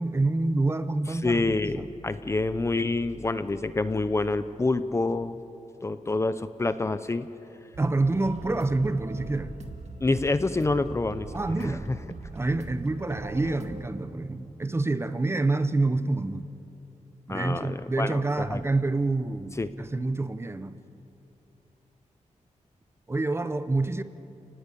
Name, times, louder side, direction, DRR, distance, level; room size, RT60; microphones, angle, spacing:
voice 1, 0.0-1.4 1.8-1.9 7.8-9.5 11.3-11.9 12.3-16.5 17.3-20.8 23.1-24.0, right 2 dB, 20° right, 12 dB, 0.7 m, -27 dB
voice 2, 1.2-5.4 5.8-7.3 10.0-11.3 11.6-12.0 17.3-18.6 19.6-19.7, left 3 dB, 20° left, 12 dB, 0.6 m, -27 dB
sound 1, 7.7-13.9, right 3 dB, 60° right, 2.0 m, -41 dB
30.0 x 19.0 x 8.4 m, 2.9 s
wide cardioid pair, 180°, 13 cm